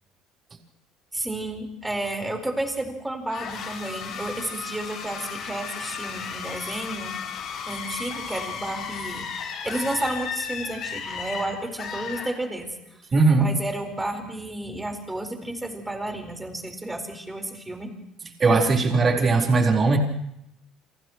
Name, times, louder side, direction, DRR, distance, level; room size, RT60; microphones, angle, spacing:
voice 1, 1.1-7.1 7.7-9.3 9.6-12.7 13.4-17.9, right 1 dB, 5° right, 4 dB, 4.5 m, -31 dB
sound 1, 3.3-12.8, left 6 dB, 45° left, 6.4 m, -34 dB
voice 2, 13.1-13.5 18.4-20.0, right 3 dB, 25° right, 0 dB, 4.2 m, -19 dB
30.0 x 27.5 x 3.1 m, 0.79 s
cardioid pair, 145°, 0 cm